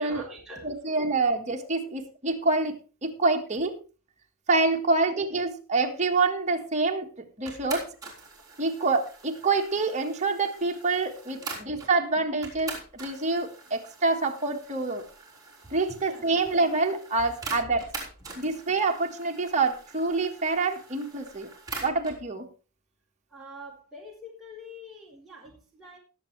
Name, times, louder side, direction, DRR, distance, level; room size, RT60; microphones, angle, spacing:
voice 1, 0.0-0.7 1.6-1.9 4.6-4.8 11.3-11.8 15.6-15.8 16.1-16.2 18.3-18.4 19.0-19.1 23.3-26.0, left 1 dB, ahead, -5 dB, 3.9 m, -46 dB
voice 2, 0.6-3.8 4.5-7.1 7.4-7.9 8.6-15.0 15.7-17.9 18.4-21.5 21.8-22.4, right 3 dB, 35° right, 2 dB, 1.6 m, -26 dB
sound 1, 7.5-11.9 12.4-22.2, right 3 dB, 15° right, 3.7 m, -43 dB
19.5 x 7.6 x 3.3 m, 0.34 s
head